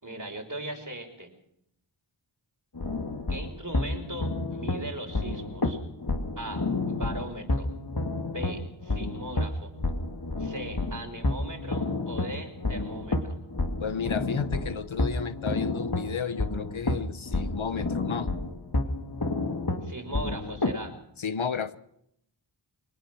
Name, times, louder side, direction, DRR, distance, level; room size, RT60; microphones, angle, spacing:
voice 1, 0.0-1.3 3.3-5.8 6.4-6.6 6.9-7.7 8.3-9.7 10.4-13.4 19.8-20.9, right 1 dB, 40° right, 4 dB, 5.6 m, -39 dB
sound 1, 2.7-20.8, left 2 dB, 50° left, 2.5 m, -30 dB
voice 2, 13.8-18.3 21.2-21.8, left 6 dB, 70° left, 14 dB, 1.1 m, -32 dB
25.0 x 19.0 x 6.3 m, 0.76 s
wide cardioid pair, 40°, 49 cm